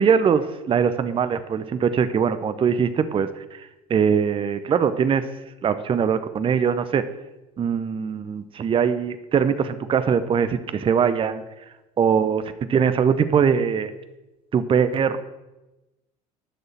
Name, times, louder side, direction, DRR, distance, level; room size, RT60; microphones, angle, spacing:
voice 1, 0.0-5.3 5.6-7.1 7.6-11.4 12.0-13.9 14.5-15.2, right 7 dB, 25° right, 12 dB, 0.8 m, -22 dB
11.5 x 6.5 x 7.5 m, 1.0 s
figure-of-eight pair, 70°, 20 cm